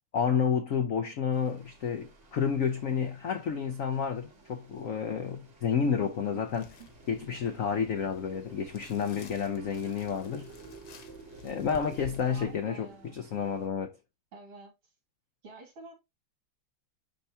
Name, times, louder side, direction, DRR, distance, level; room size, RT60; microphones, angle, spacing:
voice 1, 0.1-6.7 7.1-10.5 11.4-14.0, left 7 dB, 80° left, 0.7 m, -30 dB
sound 1, 1.3-13.7, right 4 dB, 90° right, 3.2 m, -53 dB
sound 2, 6.5-12.6, left 4 dB, 55° left, 1.7 m, -51 dB
voice 2, 12.3-13.2 14.3-14.7 15.4-15.9, right 3 dB, 75° right, 3.3 m, -48 dB
10.0 x 3.4 x 2.8 m
omnidirectional pair, 2.3 m